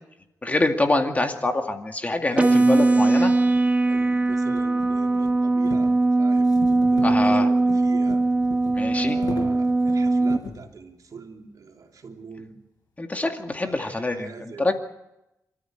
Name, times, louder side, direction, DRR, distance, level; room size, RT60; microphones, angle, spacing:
voice 1, 0.4-3.3 7.0-7.5 8.7-9.2 13.0-14.7, left 2 dB, 25° left, 4 dB, 2.2 m, -25 dB
sound 1, 1.9-2.0 2.7-10.7, left 4 dB, 80° left, 6.3 m, -40 dB
voice 2, 2.3-8.2 9.0-12.5 13.6-14.7, right 5 dB, 65° right, 2 dB, 3.1 m, -42 dB
sound 2, 2.4-10.4, right 2 dB, 20° right, 1.5 m, -20 dB
28.0 x 13.5 x 9.0 m, 0.90 s
wide cardioid pair, 105°, 7 cm